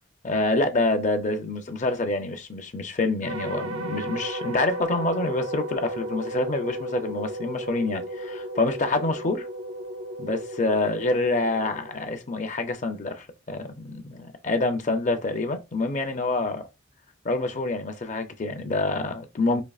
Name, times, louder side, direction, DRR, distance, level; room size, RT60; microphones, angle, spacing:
voice 1, 0.2-9.5 10.2-16.6 17.2-19.6, left 2 dB, 35° left, 0.5 m, -27 dB
sound 1, 3.2-12.5, right 1 dB, 75° right, 0.8 m, -35 dB
5.1 x 2.8 x 2.3 m
head